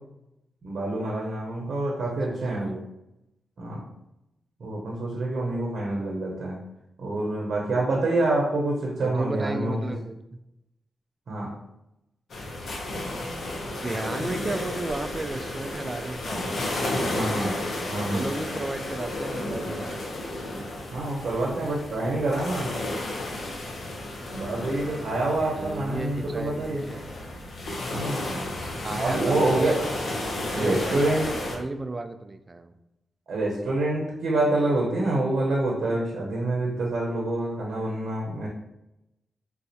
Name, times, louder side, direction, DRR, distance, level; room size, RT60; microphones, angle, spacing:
voice 1, 0.6-2.8 3.6-3.8 4.6-6.6 7.0-9.8 11.3-11.6 17.1-17.6 17.9-18.3 20.9-22.8 24.3-26.9 27.9-28.5 29.0-29.8 30.5-31.3 33.3-38.5, right 2 dB, 75° right, -2 dB, 0.7 m, -27 dB
voice 2, 9.0-10.2 13.8-16.5 16.8-17.2 18.0-20.0 25.5-27.0 27.9-28.5 28.8-32.7, right 2 dB, 30° right, 8 dB, 0.3 m, -34 dB
sound 1, 12.3-31.6, left 1 dB, 70° left, 0.7 m, -33 dB
4.2 x 2.3 x 2.7 m, 0.89 s
cardioid pair, 75°, 0 cm